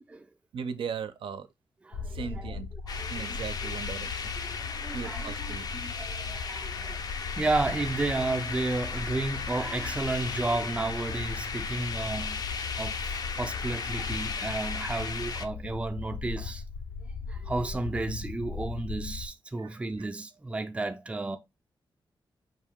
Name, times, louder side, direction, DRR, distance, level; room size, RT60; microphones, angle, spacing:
voice 1, 0.5-1.5 2.1-2.7 3.1-4.3 4.9-5.7 19.6-20.1, right 6 dB, 75° right, 0.5 m, -38 dB
sound 1, 1.9-19.3, left 5 dB, 85° left, 0.7 m, -38 dB
voice 2, 1.9-2.5 2.9-3.4 4.4-7.0 7.4-12.4 12.8-16.6 17.3-21.4, right 2 dB, 15° right, 0.4 m, -32 dB
sound 2, 2.9-15.5, left 5 dB, 50° left, 0.4 m, -36 dB
5.3 x 2.7 x 3.6 m
wide cardioid pair, 175°, 9 cm